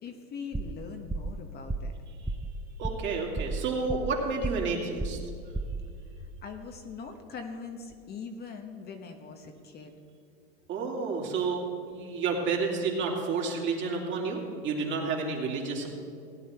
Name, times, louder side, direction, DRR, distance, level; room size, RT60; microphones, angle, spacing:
voice 1, 0.0-1.9 6.2-9.9, left 5 dB, 30° left, 5 dB, 1.2 m, -42 dB
sound 1, 0.5-0.8 1.1-1.4 1.7-2.0 2.3-2.5 2.8-3.1 3.4-4.2 4.4-4.7 5.0-5.3 5.5-5.8, right 3 dB, 5° right, 0.6 m, -32 dB
voice 2, 2.8-5.2 10.7-15.9, right 4 dB, 40° right, -1 dB, 2.9 m, -30 dB
17.5 x 10.0 x 4.5 m, 2.4 s
supercardioid pair, 120°, 31 cm